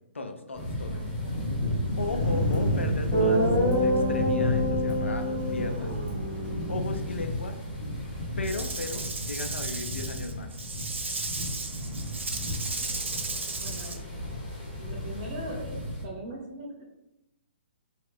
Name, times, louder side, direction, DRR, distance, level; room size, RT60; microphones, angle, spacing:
voice 1, 0.1-1.0 2.0-5.9 6.7-7.6 8.4-10.5, left 3 dB, 85° left, 6 dB, 0.5 m, -36 dB
sound 1, 0.5-16.0, left 1 dB, 30° left, 1.1 m, -32 dB
voice 2, 0.9-1.4 2.1-2.5 12.6-12.9 13.6-14.0 14.8-16.8, right 1 dB, 40° right, -1 dB, 1.0 m, -41 dB
Guitar, 2.5-2.6 3.1-7.2, equal, 15° left, 1.4 m, -27 dB
Rattle / Rattle (instrument), 8.4-14.0, right 3 dB, 80° right, 0.5 m, -35 dB
2.8 x 2.4 x 3.5 m, 0.88 s
hypercardioid pair, 130°, 6 cm